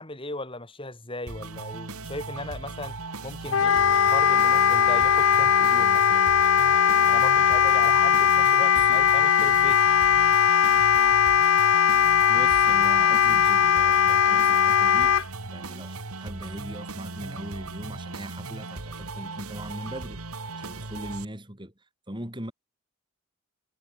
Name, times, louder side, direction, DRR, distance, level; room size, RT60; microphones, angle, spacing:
voice 1, 0.0-3.0 3.2-6.3 7.1-9.9, left 2 dB, 25° left, 5.4 m, -37 dB
sound 1, 1.3-21.2, right 3 dB, 80° right, 2.3 m, -38 dB
Wind instrument woodwind instrument, 3.5-15.2, left 8 dB, 70° left, 0.6 m, -19 dB
voice 2, 8.7-9.0 12.3-21.7 22.1-22.5, right 1 dB, 20° right, 4.0 m, -40 dB
head